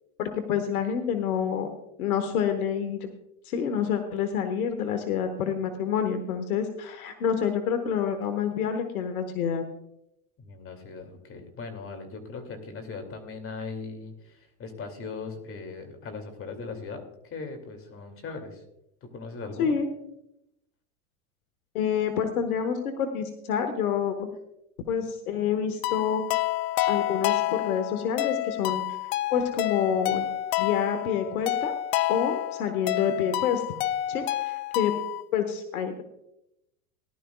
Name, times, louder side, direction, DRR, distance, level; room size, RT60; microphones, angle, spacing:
voice 1, 0.2-1.7 2.0-3.1 3.4-9.6 19.6-19.9 21.7-24.3 24.9-26.3 26.9-28.8 29.3-30.3 30.6-31.7 32.1-33.6 34.1-34.9 35.3-36.0, left 7 dB, 85° left, 7 dB, 1.4 m, -28 dB
voice 2, 10.4-18.6 19.0-19.7, left 4 dB, 30° left, 6 dB, 2.6 m, -39 dB
sound 1, 25.8-35.2, left 14 dB, 55° left, 0.6 m, -29 dB
19.0 x 11.5 x 2.3 m, 0.82 s
hypercardioid pair, 110°, 42 cm